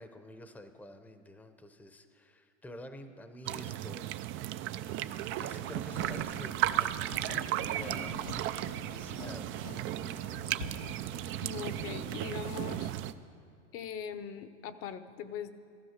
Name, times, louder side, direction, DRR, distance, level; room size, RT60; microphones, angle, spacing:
voice 1, 0.0-4.2 5.4-9.7, left 1 dB, 5° left, 8 dB, 0.8 m, -49 dB
sound 1, 3.4-13.1, right 13 dB, 35° right, 0.5 m, -35 dB
sound 2, 5.9-13.2, left 2 dB, 85° left, 3.1 m, -46 dB
voice 2, 11.4-12.9 13.7-15.7, left 8 dB, 40° left, 12 dB, 0.9 m, -41 dB
14.5 x 13.0 x 6.6 m, 2.5 s
supercardioid pair, 115°, 36 cm